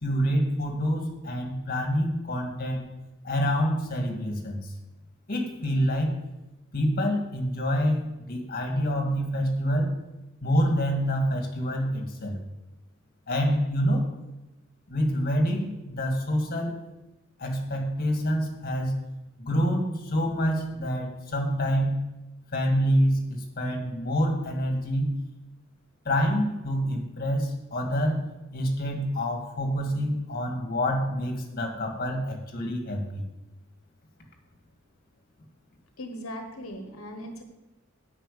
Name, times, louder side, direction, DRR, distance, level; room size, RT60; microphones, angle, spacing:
voice 1, 0.0-2.9 3.2-4.7 5.3-6.1 6.7-9.9 10.4-12.4 13.3-14.1 14.9-16.8 17.4-18.9 19.4-22.0 22.5-25.1 26.1-28.2 28.5-33.2, equal, 45° left, 3 dB, 2.1 m, -27 dB
voice 2, 36.0-37.4, equal, 85° left, 4 dB, 1.3 m, -38 dB
9.3 x 6.0 x 8.5 m, 1.0 s
head